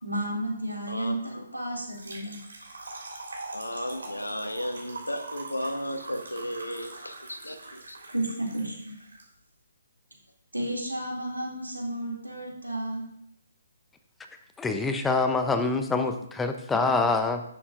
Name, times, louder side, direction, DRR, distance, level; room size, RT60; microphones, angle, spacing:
voice 1, 0.0-2.4 8.1-9.0 10.5-13.0, right 1 dB, 90° right, -2 dB, 2.4 m, -32 dB
Trickle dribble / Fill (with liquid), 1.8-9.2, right 2 dB, 65° right, 2.7 m, -42 dB
voice 2, 3.5-8.0, equal, 85° left, 8 dB, 1.1 m, -34 dB
voice 3, 14.6-17.4, left 3 dB, 10° left, 7 dB, 0.6 m, -25 dB
11.0 x 6.9 x 2.5 m, 0.74 s
figure-of-eight pair, 135°, 0 cm